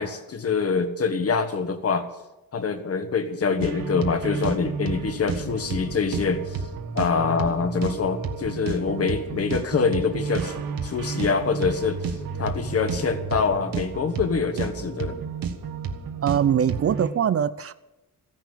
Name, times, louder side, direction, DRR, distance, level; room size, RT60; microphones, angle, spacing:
voice 1, 0.0-2.1 2.5-6.6 6.9-15.2, left 5 dB, 45° left, 8 dB, 1.5 m, -25 dB
sound 1, 3.6-17.1, right 5 dB, 80° right, 1.7 m, -31 dB
voice 2, 16.2-17.7, right 9 dB, 45° right, 14 dB, 0.5 m, -22 dB
15.0 x 10.5 x 7.7 m, 0.98 s
wide cardioid pair, 150°, 34 cm